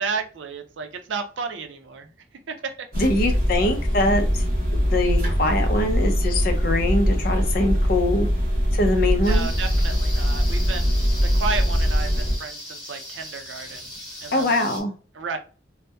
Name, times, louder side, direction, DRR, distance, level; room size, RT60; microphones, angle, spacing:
voice 1, 0.0-2.1 2.5-2.7 9.3-13.9 14.2-14.5 15.1-15.4, right 5 dB, 75° right, 7 dB, 0.5 m, -32 dB
sound 1, 2.9-12.4, equal, 50° right, 0.8 m, -22 dB
voice 2, 3.0-4.4 4.7-8.3 8.7-9.5 14.3-14.9, left 1 dB, 50° left, 5 dB, 0.5 m, -23 dB
sound 2, 9.2-14.8, left 1 dB, 20° left, 0.9 m, -38 dB
2.7 x 2.1 x 2.2 m, 0.36 s
head